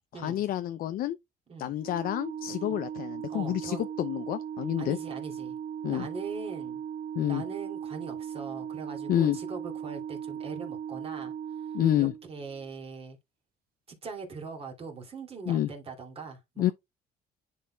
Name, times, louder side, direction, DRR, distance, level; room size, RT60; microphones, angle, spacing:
voice 1, 0.1-1.2 1.6-5.0 5.8-6.1 7.2-7.4 9.1-9.4 11.7-12.1 15.5-15.7 16.6-16.7, left 12 dB, 60° left, 0.5 m, -28 dB
Organ, 1.8-12.6, right 8 dB, 60° right, 1.1 m, -38 dB
voice 2, 3.3-3.8 4.8-5.6 5.9-6.8 7.3-11.3 11.9-13.2 13.9-16.7, right 4 dB, 35° right, 2.6 m, -41 dB
10.0 x 4.2 x 2.2 m
cardioid pair, 110°, 17 cm